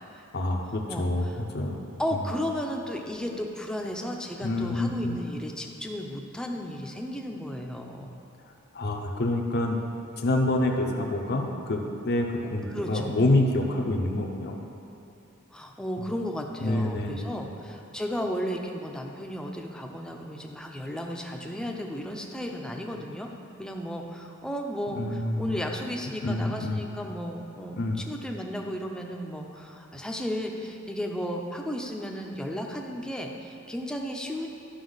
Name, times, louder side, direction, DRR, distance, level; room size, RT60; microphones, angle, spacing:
voice 1, 0.3-1.8 2.1-2.2 4.4-5.2 8.7-9.8 10.2-14.6 16.0-16.1 16.6-17.5 24.9-25.6 26.2-26.8 27.7-28.0, left 1 dB, 55° left, 1 dB, 0.7 m, -27 dB
voice 2, 2.0-8.1 12.7-13.1 15.5-23.3 23.6-34.5, equal, 5° left, 1 dB, 0.6 m, -34 dB
11.5 x 5.6 x 4.0 m, 2.9 s
head